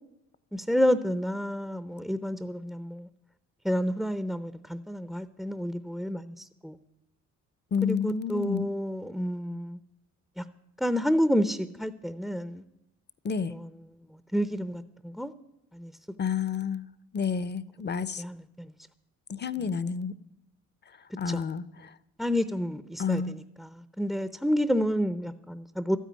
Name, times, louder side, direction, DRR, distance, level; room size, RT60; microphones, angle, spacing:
voice 1, 0.5-3.1 3.6-6.8 7.8-9.8 10.4-10.5 10.8-12.6 14.3-15.3 15.7-15.9 18.2-18.7 21.3-21.4 22.2-26.0, equal, ahead, 13 dB, 0.6 m, -29 dB
voice 2, 7.7-8.7 13.2-13.5 16.2-16.9 17.1-18.2 19.3-20.2 21.2-21.9 23.0-23.4, left 6 dB, 35° left, 17 dB, 0.8 m, -30 dB
13.0 x 9.3 x 9.5 m, 0.88 s
cardioid pair, 90°, 30 cm